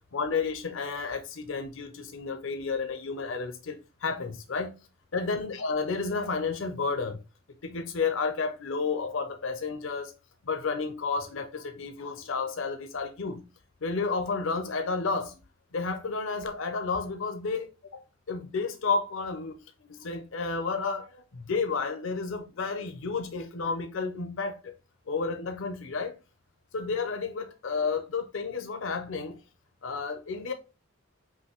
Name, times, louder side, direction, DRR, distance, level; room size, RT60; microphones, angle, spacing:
voice 1, 0.1-3.7 4.0-4.7 5.1-7.2 7.6-10.1 10.5-13.4 13.8-15.3 15.7-17.7 18.3-19.5 19.9-21.0 21.5-24.6 25.1-26.1 26.7-29.4 29.8-30.5, left 4 dB, 70° left, 0.6 m, -31 dB
5.5 x 2.6 x 2.9 m
head